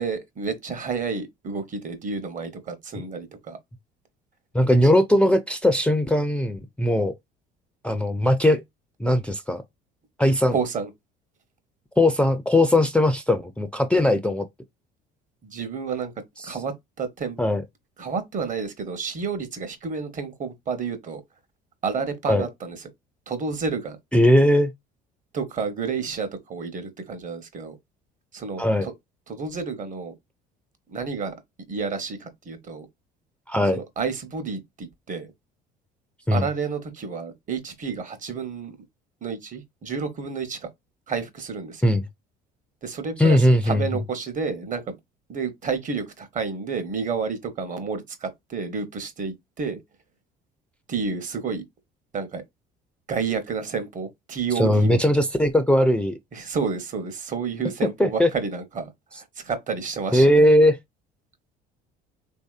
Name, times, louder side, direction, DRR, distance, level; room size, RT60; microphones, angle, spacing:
voice 1, 0.0-3.6 10.5-10.9 15.4-16.1 16.4-17.4 18.0-21.2 21.8-22.8 23.3-24.0 25.3-27.8 28.3-28.9 29.3-30.1 30.9-31.3 31.7-32.9 33.7-35.3 36.3-38.8 39.2-40.7 41.1-41.9 42.8-44.9 45.3-49.8 50.9-51.6 52.1-52.4 53.1-55.0 56.3-58.9 59.4-60.6, right 5 dB, 40° right, 1.0 m, -30 dB
voice 2, 4.5-7.1 7.8-8.6 9.0-9.6 10.2-10.5 12.0-14.5 16.4-16.6 17.4-17.6 22.3-22.5 24.1-24.7 28.6-28.9 33.5-33.8 36.3-36.5 41.8-42.0 43.2-43.8 54.6-56.2 58.0-58.3 60.1-60.8, left 1 dB, 5° left, 0.4 m, -19 dB
3.0 x 2.7 x 2.4 m
supercardioid pair, 80°, 21 cm